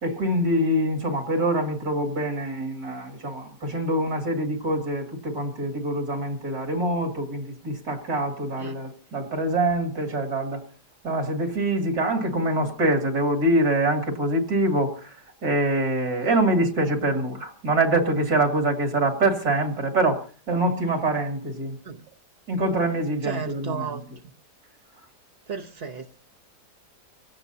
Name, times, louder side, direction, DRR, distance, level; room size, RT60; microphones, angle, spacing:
voice 1, 0.0-10.6 11.0-15.0 15.4-20.2 20.5-21.7 22.5-24.0, right 1 dB, 65° right, 3.1 m, -24 dB
voice 2, 23.2-24.0 25.5-26.2, right 6 dB, 45° right, 1.0 m, -34 dB
25.0 x 17.0 x 2.8 m
omnidirectional pair, 1.7 m